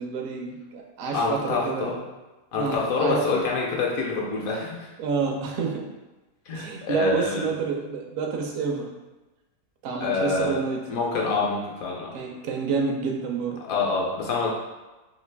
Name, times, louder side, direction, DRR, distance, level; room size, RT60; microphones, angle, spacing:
voice 1, 0.0-1.9 2.6-3.3 5.0-5.9 6.5-8.9 9.8-10.8 12.1-13.6, right 5 dB, 70° right, 2 dB, 0.8 m, -28 dB
voice 2, 1.1-2.0 2.5-4.9 6.5-7.5 10.0-10.6 10.9-12.1 13.6-14.5, left 4 dB, 65° left, -2 dB, 1.0 m, -26 dB
3.1 x 2.4 x 3.3 m, 1.1 s
omnidirectional pair, 1.7 m